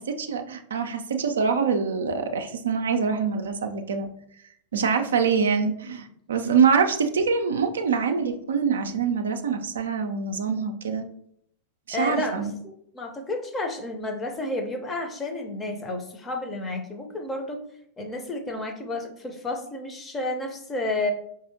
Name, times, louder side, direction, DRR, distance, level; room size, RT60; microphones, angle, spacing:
voice 1, 0.2-4.1 4.7-11.0 11.9-12.5, right 6 dB, 65° right, 6 dB, 0.4 m, -24 dB
voice 2, 11.9-17.6 18.0-21.1, left 2 dB, 15° left, 4 dB, 0.6 m, -31 dB
4.7 x 2.6 x 2.6 m, 0.70 s
figure-of-eight pair, 90°, 0 cm